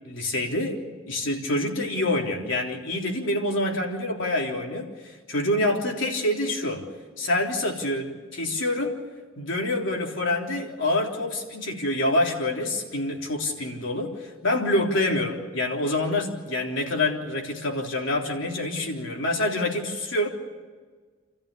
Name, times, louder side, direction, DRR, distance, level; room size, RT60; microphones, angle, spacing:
voice 1, 0.0-6.8 7.2-8.9 9.4-20.3, left 1 dB, 65° left, 1 dB, 3.7 m, -26 dB
30.0 x 14.0 x 8.6 m, 1.4 s
head